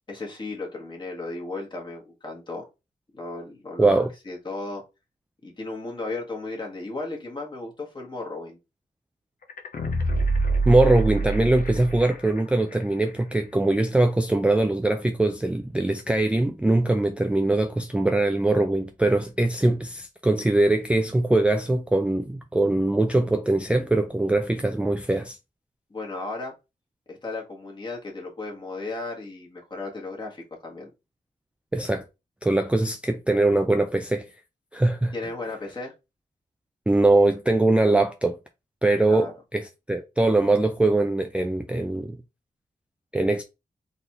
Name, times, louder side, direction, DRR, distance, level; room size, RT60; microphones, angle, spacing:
voice 1, 0.1-2.7 3.1-4.8 5.4-8.6 25.9-26.5 27.1-30.9 35.1-35.9 39.1-39.3, left 2 dB, 30° left, 1.5 m, -35 dB
voice 2, 3.8-4.1 10.7-25.4 31.7-32.0 32.4-34.3 34.7-35.1 36.9-38.4 38.8-42.2 43.1-43.4, right 2 dB, 10° right, 0.3 m, -22 dB
sound 1, 9.5-12.4 12.7-12.8, right 3 dB, 65° left, 0.8 m, -25 dB
4.0 x 3.4 x 2.9 m
wide cardioid pair, 135°, 16 cm